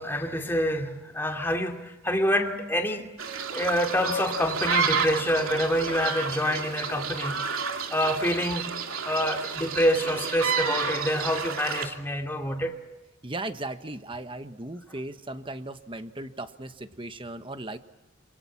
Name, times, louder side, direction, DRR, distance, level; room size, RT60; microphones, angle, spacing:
voice 1, 0.0-3.1 3.5-7.4 7.9-8.7 9.0-12.8, equal, 10° left, 2.6 m, -27 dB
sound 1, 3.2-11.9, right 5 dB, 85° right, 2.7 m, -30 dB
voice 2, 13.2-17.8, right 2 dB, 25° right, 1.3 m, -37 dB
27.5 x 26.5 x 7.4 m
head